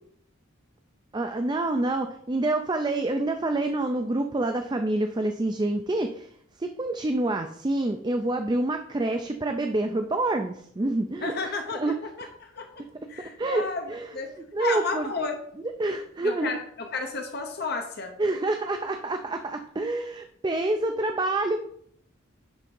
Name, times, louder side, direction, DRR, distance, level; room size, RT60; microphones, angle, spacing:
voice 1, 1.1-6.3 6.6-11.9 13.4-14.1 14.5-15.1 15.8-16.5 18.2-21.6, right 2 dB, 20° right, 6 dB, 0.4 m, -27 dB
voice 2, 11.2-12.7 13.1-14.3 14.6-15.4 16.2-18.1, left 4 dB, 50° left, 4 dB, 0.9 m, -32 dB
10.0 x 3.6 x 5.3 m, 0.67 s
head